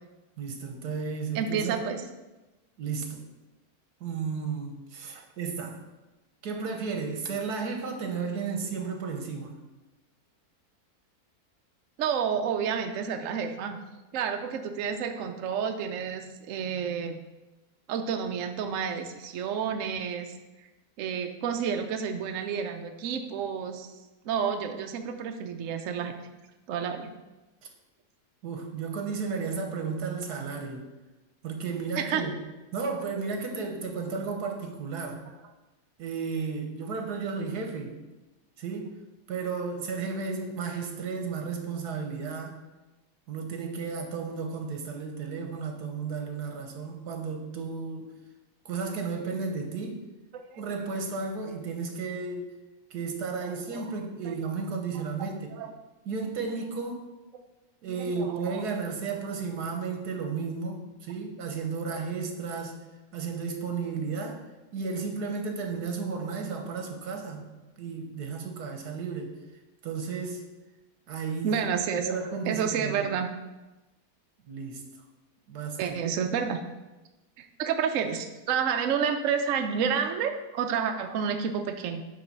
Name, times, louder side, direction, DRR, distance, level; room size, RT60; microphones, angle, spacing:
voice 1, 0.4-2.0 2.8-3.2 4.0-5.8 6.4-9.6 28.4-30.8 31.4-32.3 32.7-35.2 36.0-37.9 38.6-38.9 39.3-42.5 43.3-48.1 48.6-50.0 50.6-52.5 52.9-55.5 56.0-57.1 57.8-62.8 63.1-64.4 64.7-67.5 67.8-69.3 69.8-70.4 71.1-71.7 72.0-73.1 74.5-74.8 75.5-76.0, right 5 dB, 90° right, 4 dB, 1.6 m, -33 dB
voice 2, 1.3-2.0 12.0-13.8 14.1-17.2 17.9-20.3 21.0-23.9 24.2-26.1 26.7-27.1 32.0-32.3 50.3-50.6 53.5-53.6 55.5-55.7 57.8-58.6 71.4-72.2 72.4-73.3 75.8-76.6 77.4-82.0, right 7 dB, 65° right, 6 dB, 0.9 m, -30 dB
9.0 x 3.8 x 5.4 m, 1.1 s
omnidirectional pair, 1.7 m